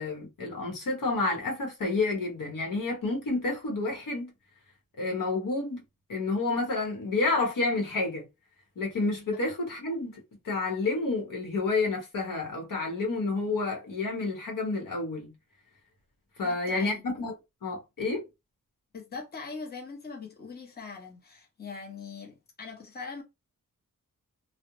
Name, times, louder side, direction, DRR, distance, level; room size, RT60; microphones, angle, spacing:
voice 1, 0.0-4.3 5.0-5.8 6.1-8.3 8.8-15.3 16.4-17.3 17.6-18.3, left 3 dB, 75° left, 0.9 m, -30 dB
voice 2, 16.4-17.0 18.9-23.2, left 4 dB, 30° left, 0.8 m, -41 dB
2.4 x 2.0 x 3.0 m
wide cardioid pair, 100°, 33 cm